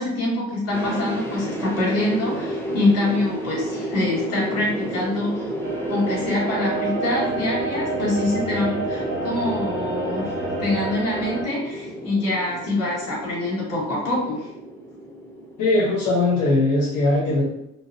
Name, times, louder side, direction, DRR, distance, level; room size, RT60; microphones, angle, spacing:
voice 1, 0.0-5.4 5.9-14.5, left 2 dB, 55° left, -6 dB, 1.2 m, -25 dB
sound 1, 0.7-16.9, equal, 10° left, 0.3 m, -32 dB
sound 2, 5.6-11.4, right 2 dB, 40° left, 0.9 m, -29 dB
voice 2, 15.6-17.4, left 2 dB, 85° left, -6 dB, 0.7 m, -20 dB
2.5 x 2.1 x 2.5 m, 0.82 s
cardioid pair, 105°, 30 cm